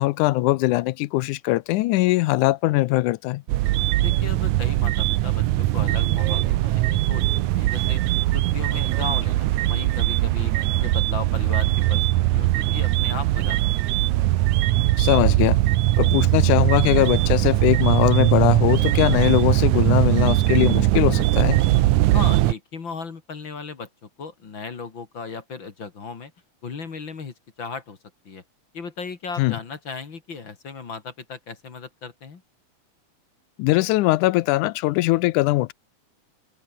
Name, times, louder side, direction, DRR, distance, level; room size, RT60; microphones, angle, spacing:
voice 1, 0.0-3.4 15.0-15.6 16.0-21.6 29.4-29.6 33.6-35.7, left 19 dB, 80° left, 2.0 m, -21 dB
sound 1, 3.5-22.5, right 16 dB, 75° right, 2.0 m, -20 dB
voice 2, 4.0-7.2 7.5-8.0 8.3-10.5 10.8-13.9 22.1-26.3 26.6-28.0 28.2-28.4 28.7-32.4, left 5 dB, 40° left, 2.7 m, -36 dB
open air
omnidirectional pair, 3.8 m